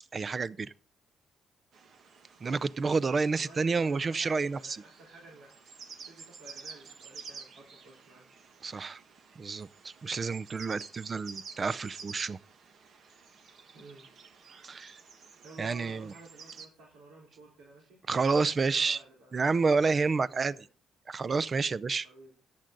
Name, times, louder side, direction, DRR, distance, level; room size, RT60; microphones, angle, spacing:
voice 1, 0.1-0.7 2.4-4.8 8.6-9.0 9.4-12.4 14.6-15.0 15.6-16.1 18.1-19.0 19.3-20.5 21.1-22.1, right 4 dB, 35° right, 0.5 m, -29 dB
sound 1, 1.7-16.7, right 5 dB, 60° right, 1.5 m, -51 dB
voice 2, 3.3-5.5 6.1-8.3 13.7-14.0 15.4-18.0 18.3-20.6 22.0-22.3, right 2 dB, 85° right, 4.1 m, -53 dB
14.0 x 10.5 x 3.9 m
cardioid pair, 90°, 0 cm